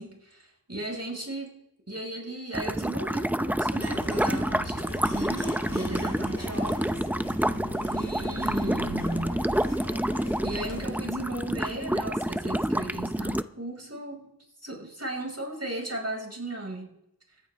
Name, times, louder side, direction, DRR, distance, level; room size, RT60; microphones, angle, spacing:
voice 1, 0.0-1.6 1.9-7.0 7.9-9.4 10.4-14.3 14.6-16.9, right 1 dB, 35° right, 1 dB, 5.8 m, -36 dB
sound 1, 2.5-13.4, right 1 dB, 5° right, 0.6 m, -28 dB
sound 2, 3.8-10.8, left 1 dB, 50° left, 7.0 m, -40 dB
28.5 x 14.0 x 3.6 m, 0.81 s
wide cardioid pair, 40°, 41 cm